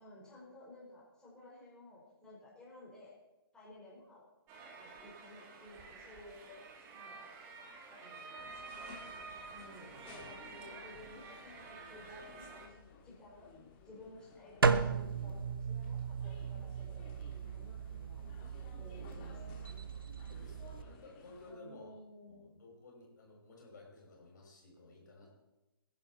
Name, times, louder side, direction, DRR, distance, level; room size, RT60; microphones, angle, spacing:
voice 1, 0.0-3.1 3.5-4.2 4.8-7.3 7.9-8.4 9.5-12.8 13.0-13.6 13.8-18.2 18.8-19.9 21.5-22.5 25.2-25.3, left 1 dB, 5° left, -7 dB, 5.0 m, -55 dB
sound 1, 4.5-12.7, right 4 dB, 20° right, 2.0 m, -50 dB
sound 2, 8.4-21.5, left 4 dB, 25° left, 2.5 m, -57 dB
sound 3, 14.6-20.8, right 5 dB, 65° right, 1.2 m, -36 dB
voice 2, 20.3-22.0 22.3-25.3, left 3 dB, 50° left, -1 dB, 5.9 m, -55 dB
21.0 x 11.0 x 4.4 m, 1.0 s
figure-of-eight pair, 135°, 13 cm